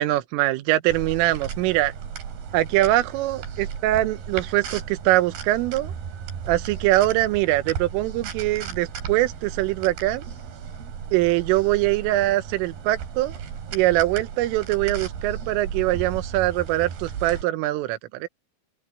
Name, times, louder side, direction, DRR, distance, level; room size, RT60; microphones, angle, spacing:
voice 1, 0.0-1.9 2.5-5.9 6.5-10.2 11.1-13.4 13.7-18.3, right 16 dB, 80° right, 3.6 m, -23 dB
sound 1, 0.9-17.4, right 7 dB, 55° right, 4.7 m, -35 dB
open air
omnidirectional pair, 5.8 m